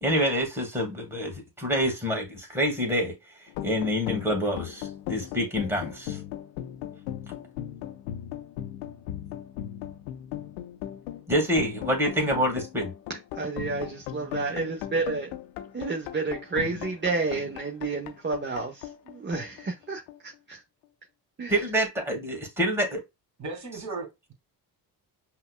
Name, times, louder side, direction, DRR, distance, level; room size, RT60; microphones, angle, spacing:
voice 1, 0.0-3.1 3.6-6.2 11.3-12.9 21.5-23.0, equal, 5° right, 1.8 m, -27 dB
sound 1, 3.5-20.3, left 12 dB, 85° left, 0.6 m, -38 dB
voice 2, 13.4-15.3 15.7-20.6 21.4-21.5, right 3 dB, 25° right, 0.8 m, -30 dB
voice 3, 23.4-24.3, right 3 dB, 40° right, 2.2 m, -36 dB
5.5 x 2.3 x 2.2 m
hypercardioid pair, 55°, 46 cm